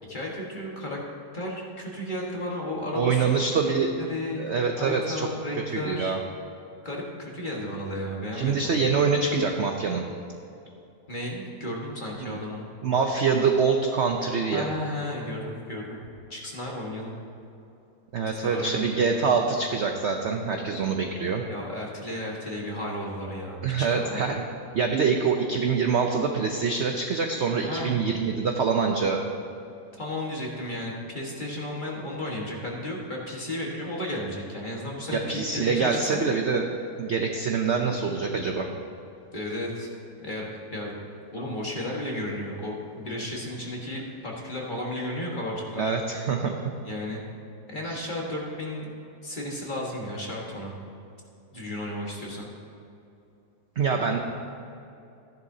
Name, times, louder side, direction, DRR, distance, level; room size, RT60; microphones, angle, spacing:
voice 1, 0.0-1.0 1.3-4.4 4.8-6.2 6.8-8.8 11.1-12.7 14.5-16.0 16.3-17.1 18.4-19.4 21.5-24.3 27.7-27.9 30.0-36.4 39.3-39.9 40.2-41.0 41.3-45.8 46.8-47.2 47.7-48.9 49.2-50.7 51.5-52.5, left 1 dB, 30° left, -3 dB, 1.5 m, -34 dB
voice 2, 2.9-3.9 4.3-5.3 5.7-6.2 8.3-10.0 12.2-12.4 12.8-14.7 18.1-21.4 23.6-24.4 24.7-29.2 35.1-36.7 37.0-38.7 45.8-46.6 47.9-48.0 53.8-54.2, right 5 dB, 60° right, 3 dB, 0.7 m, -25 dB
14.5 x 10.5 x 2.8 m, 2.7 s
omnidirectional pair, 1.8 m